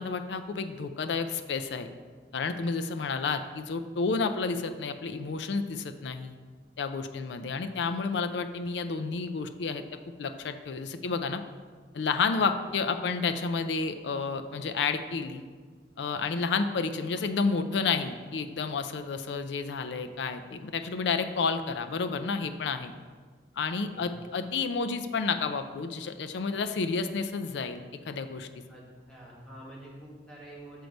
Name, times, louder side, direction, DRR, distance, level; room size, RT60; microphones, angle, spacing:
voice 1, 0.0-1.9 2.3-6.3 6.8-9.8 10.2-11.4 11.9-15.4 16.0-22.9 23.6-28.5, left 4 dB, 80° left, 8 dB, 0.4 m, -30 dB
voice 2, 28.7-30.9, right 1 dB, 5° left, -6 dB, 1.7 m, -47 dB
6.5 x 4.5 x 5.2 m, 1.5 s
head